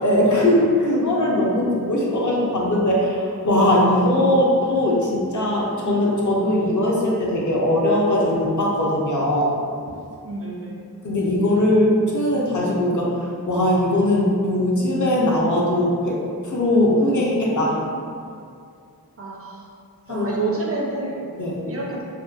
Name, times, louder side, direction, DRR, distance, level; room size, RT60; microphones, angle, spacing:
voice 1, 0.0-9.6 11.0-16.2 16.4-17.8 20.1-20.3 21.4-21.6, left 1 dB, 55° left, -4 dB, 0.5 m, -20 dB
voice 2, 10.2-10.9 19.2-19.7 20.1-21.2 21.7-22.0, right 2 dB, 40° right, -4 dB, 0.5 m, -28 dB
2.6 x 2.1 x 2.3 m, 2.3 s
wide cardioid pair, 55°, 37 cm